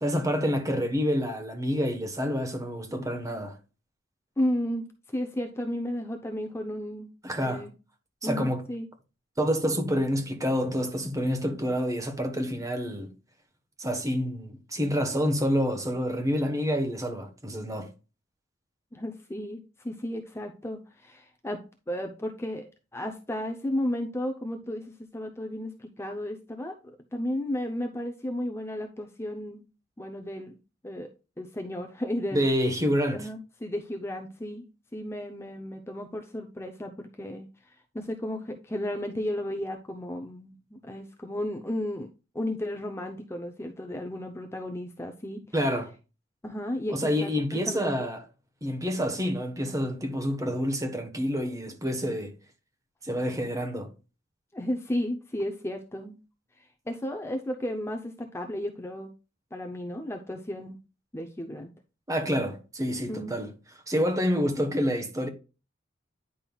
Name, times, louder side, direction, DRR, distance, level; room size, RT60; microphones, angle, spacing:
voice 1, 0.0-3.6 7.2-7.7 8.2-8.6 9.4-13.1 13.8-17.9 32.3-33.3 45.5-45.9 46.9-48.2 48.6-52.3 53.0-53.9 62.1-63.5 63.9-65.3, equal, 20° right, 1.1 m, -28 dB
voice 2, 4.4-7.1 7.4-7.7 8.2-8.9 18.9-29.6 30.0-30.6 30.8-31.1 31.4-32.5 33.1-34.7 34.9-42.1 42.3-45.4 46.4-48.1 54.5-56.2 56.6-59.1 59.5-60.8 61.1-61.7 63.1-63.3, left 1 dB, 15° left, 0.6 m, -34 dB
9.9 x 5.3 x 2.3 m
head